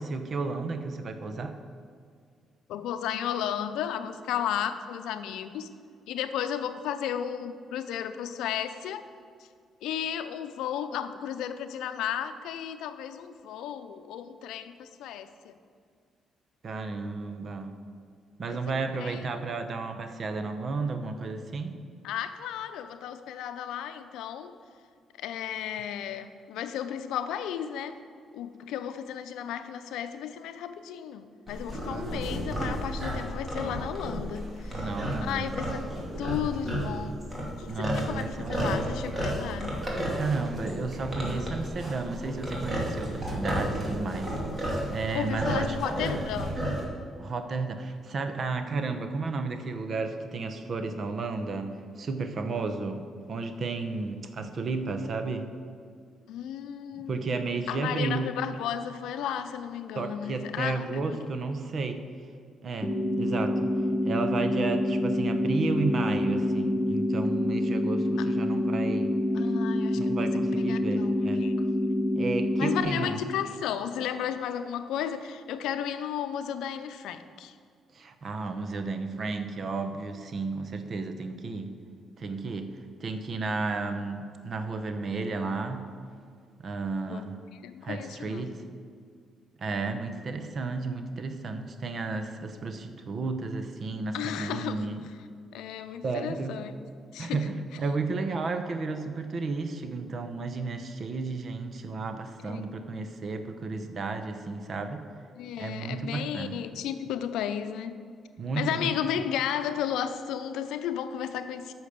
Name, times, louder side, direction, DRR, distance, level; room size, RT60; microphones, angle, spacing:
voice 1, 0.0-1.6 16.6-17.8 18.4-21.8 31.9-32.2 34.7-35.5 37.0-37.2 37.7-38.8 40.1-44.4 44.9-45.8 47.2-55.5 57.0-58.3 59.9-62.0 62.6-63.7 64.0-69.1 69.9-71.4 72.2-73.2 77.9-81.7 82.2-82.7 83.0-85.8 86.6-87.4 87.8-88.6 89.6-95.0 96.0-96.5 97.2-105.0 105.6-106.6 108.4-108.9, right 3 dB, 50° right, 7 dB, 0.9 m, -33 dB
voice 2, 2.7-5.7 6.1-9.0 9.8-15.5 18.5-19.2 22.0-24.5 25.2-28.0 28.3-34.9 35.2-35.8 36.2-37.2 37.6-39.8 45.1-46.6 56.3-61.2 68.2-68.3 69.3-71.5 72.6-77.5 87.0-88.5 94.1-94.8 95.5-96.7 97.1-97.4 102.4-103.1 105.4-107.9 108.6-111.7, left 9 dB, 90° left, 10 dB, 0.6 m, -34 dB
sound 1, 31.5-46.9, equal, 25° right, 2.4 m, -32 dB
sound 2, 62.8-72.8, left 1 dB, ahead, 0.9 m, -27 dB
8.6 x 6.3 x 6.7 m, 2.2 s
cardioid pair, 90°, 0 cm